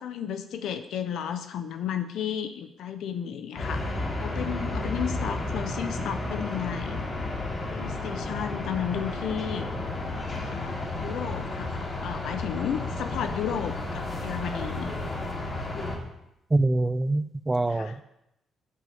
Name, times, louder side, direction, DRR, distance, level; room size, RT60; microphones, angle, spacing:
voice 1, 0.0-7.0 7.7-9.7 10.5-14.9 17.7-18.0, left 9 dB, 80° left, 9 dB, 1.0 m, -33 dB
sound 1, 3.5-16.0, left 2 dB, 40° left, 4.4 m, -32 dB
voice 2, 16.5-18.0, right 2 dB, 15° right, 14 dB, 0.7 m, -25 dB
10.5 x 8.6 x 7.9 m, 0.85 s
cardioid pair, 90°, 0 cm